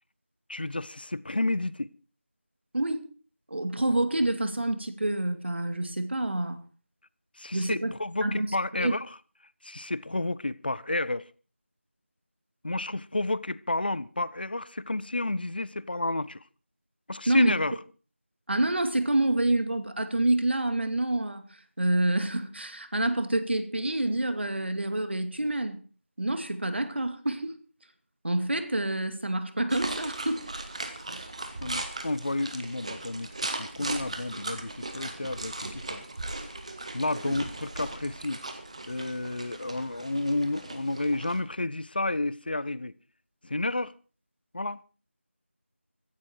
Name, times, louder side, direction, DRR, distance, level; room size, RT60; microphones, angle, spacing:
voice 1, 0.5-1.9 7.4-9.1 9.6-11.3 12.6-16.4 17.1-17.7 31.6-33.3 33.5-36.0 36.9-38.4 38.9-42.9 43.4-43.9 44.5-44.8, left 2 dB, 45° left, 0.8 m, -31 dB
voice 2, 2.7-3.1 3.5-6.6 7.5-7.9 8.2-8.5 8.8-8.9 17.3-17.5 18.5-25.8 26.2-27.5 28.2-30.5 37.3-37.4, right 1 dB, 55° right, 2.4 m, -27 dB
sound 1, 29.7-41.4, right 2 dB, 30° right, 1.8 m, -38 dB
16.0 x 15.0 x 4.6 m
figure-of-eight pair, 175°, 7 cm